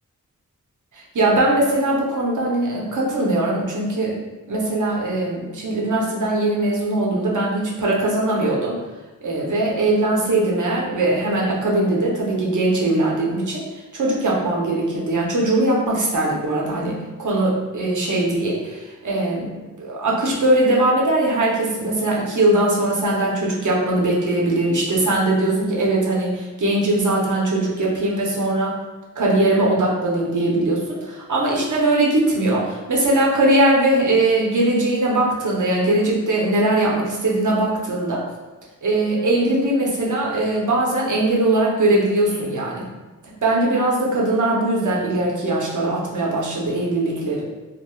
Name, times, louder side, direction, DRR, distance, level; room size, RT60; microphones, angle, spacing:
voice 1, 0.9-4.2 4.5-8.8 9.2-28.7 29.2-38.2 38.8-42.9 43.4-47.4, right 2 dB, 70° right, -4 dB, 0.7 m, -20 dB
3.0 x 2.5 x 2.3 m, 1.2 s
wide cardioid pair, 100°, 32 cm